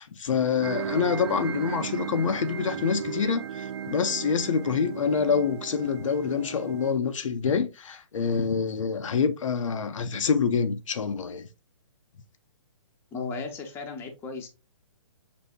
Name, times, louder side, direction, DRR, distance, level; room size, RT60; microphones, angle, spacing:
voice 1, 0.0-11.5, left 6 dB, 80° left, 0.6 m, -26 dB
sound 1, 0.6-6.9, right 7 dB, 55° right, 0.5 m, -35 dB
voice 2, 13.1-14.5, left 4 dB, 15° left, 0.8 m, -35 dB
6.7 x 2.7 x 2.4 m
hypercardioid pair, 145°, 16 cm